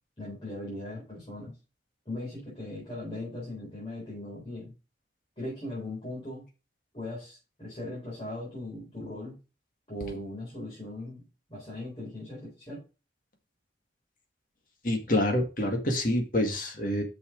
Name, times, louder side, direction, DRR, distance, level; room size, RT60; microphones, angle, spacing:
voice 1, 0.2-1.6 2.1-4.7 5.4-6.4 6.9-9.4 9.9-11.2 11.5-12.8, left 1 dB, 30° left, -7 dB, 4.1 m, -39 dB
voice 2, 14.8-17.0, left 1 dB, 50° left, 3 dB, 1.9 m, -27 dB
6.3 x 6.3 x 5.2 m, 0.32 s
head